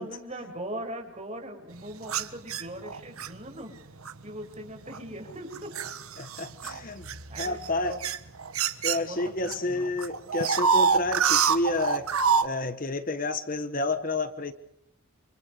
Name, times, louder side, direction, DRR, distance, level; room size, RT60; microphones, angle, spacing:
voice 1, 0.0-3.7 4.2-5.7 7.3-8.0 9.1-9.2 9.5-9.9, right 1 dB, 30° right, 6.7 m, -40 dB
sound 1, 2.0-3.3 4.1-4.3 4.9-9.5 9.8-12.5, right 6 dB, 80° right, 1.5 m, -26 dB
voice 2, 6.2-7.1 7.4-8.0 8.8-12.1 12.4-14.5, left 2 dB, 40° left, 1.3 m, -30 dB
29.0 x 28.5 x 5.0 m
head